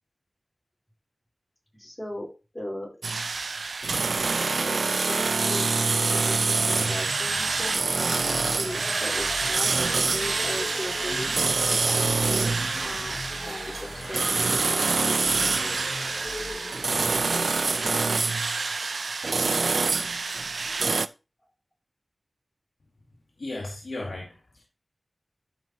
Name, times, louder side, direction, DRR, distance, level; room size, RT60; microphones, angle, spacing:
voice 1, 1.7-2.3 2.5-3.1 4.5-7.8 8.4-11.4 11.7-12.4 12.8-13.2 13.4-16.1, left 1 dB, 20° left, 0 dB, 3.9 m, -38 dB
sound 1, 3.0-21.1, right 4 dB, 85° right, 0.3 m, -26 dB
sound 2, 6.6-17.1, left 2 dB, 45° left, 0.7 m, -38 dB
voice 2, 23.4-24.6, left 2 dB, 85° left, -1 dB, 1.6 m, -35 dB
12.0 x 5.5 x 2.9 m, 0.30 s
cardioid pair, 40°, 0 cm